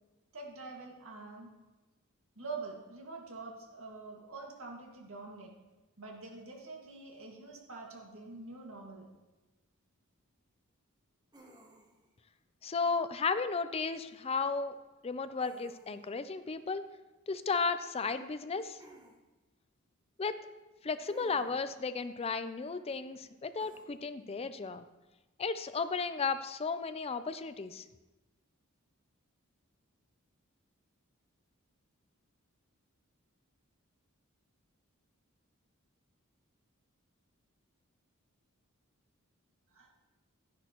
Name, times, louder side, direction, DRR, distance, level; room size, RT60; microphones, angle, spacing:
voice 1, 0.3-1.5 2.4-5.5 6.0-9.1 39.7-39.9, right 3 dB, 65° right, 0 dB, 2.0 m, -45 dB
sound 1, 11.3-12.1 15.4-16.2 18.8-19.2 21.0-21.7 23.6-23.8, right 1 dB, 20° right, 1.1 m, -57 dB
voice 2, 12.6-14.7 15.0-16.8 17.3-18.8 20.2-20.4 20.8-24.8 25.4-27.8, left 4 dB, 30° left, 11 dB, 0.5 m, -34 dB
11.5 x 10.0 x 3.0 m, 1.1 s
head